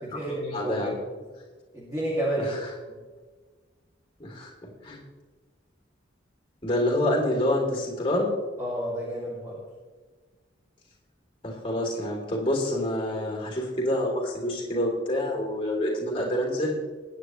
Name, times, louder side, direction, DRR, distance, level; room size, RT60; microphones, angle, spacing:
voice 1, 0.0-0.9 1.7-2.6 2.9-3.0 8.6-9.6, right 1 dB, 15° right, -6 dB, 2.4 m, -30 dB
voice 2, 0.5-0.9 2.4-2.7 4.2-5.0 6.6-8.3 11.4-16.8, left 1 dB, 30° left, -2 dB, 3.1 m, -27 dB
20.5 x 9.3 x 3.2 m, 1.4 s
head